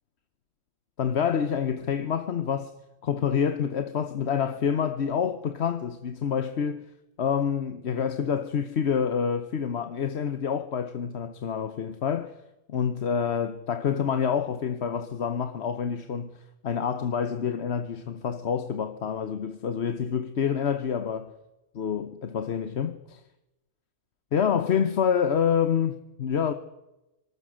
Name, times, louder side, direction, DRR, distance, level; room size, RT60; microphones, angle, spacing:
voice 1, 1.0-2.7 3.0-6.8 7.2-12.3 12.7-21.3 21.7-23.2 24.3-26.5, left 7 dB, 60° left, 1.2 m, -27 dB
25.0 x 20.0 x 6.4 m
omnidirectional pair, 1.3 m